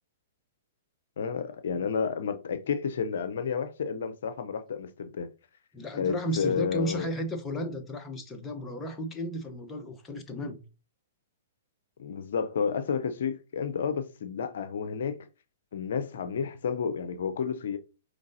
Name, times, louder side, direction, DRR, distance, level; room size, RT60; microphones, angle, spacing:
voice 1, 1.2-5.3 6.0-7.1 12.0-15.2 15.7-17.8, left 6 dB, 70° left, 0.5 m, -31 dB
voice 2, 5.7-10.6, equal, 15° left, 0.8 m, -34 dB
5.1 x 3.2 x 2.6 m
hypercardioid pair, 125°, 0 cm